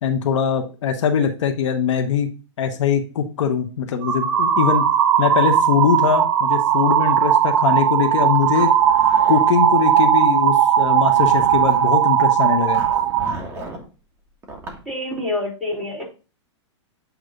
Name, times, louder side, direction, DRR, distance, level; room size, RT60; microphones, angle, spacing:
voice 1, 0.0-2.3 2.6-4.9 5.2-8.7 9.3-12.8, left 7 dB, 75° left, 5 dB, 1.0 m, -21 dB
sound 1, 4.0-13.3, right 9 dB, 60° right, 1.4 m, -17 dB
Zipper (clothing), 8.4-9.9 10.7-11.9 12.7-13.9 14.4-14.8, right 2 dB, 15° right, 1.3 m, -36 dB
voice 2, 14.9-16.0, left 2 dB, ahead, -4 dB, 2.6 m, -26 dB
8.2 x 3.1 x 3.8 m, 0.33 s
hypercardioid pair, 145°, 16 cm